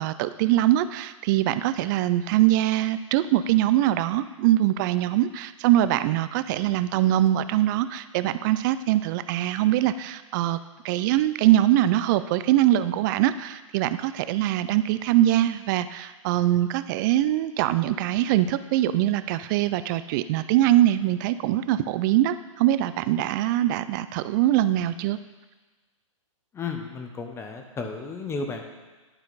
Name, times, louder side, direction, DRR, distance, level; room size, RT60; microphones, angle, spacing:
voice 1, 0.0-10.6 10.8-25.2, right 13 dB, 35° right, 13 dB, 0.3 m, -23 dB
voice 2, 26.5-28.6, left 4 dB, 15° left, 4 dB, 0.8 m, -33 dB
11.0 x 4.3 x 4.0 m, 1.3 s
hypercardioid pair, 125°, 17 cm